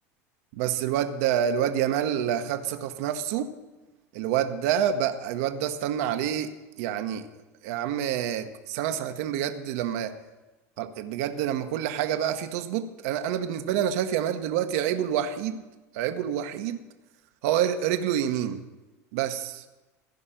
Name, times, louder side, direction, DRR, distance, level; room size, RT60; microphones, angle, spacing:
voice 1, 0.5-3.5 4.1-6.5 6.8-7.3 7.6-10.1 10.8-15.6 15.9-16.8 17.4-18.6 19.1-19.6, right 10 dB, 70° right, 8 dB, 0.9 m, -27 dB
15.5 x 5.5 x 8.9 m, 1.1 s
hypercardioid pair, 85°, 8 cm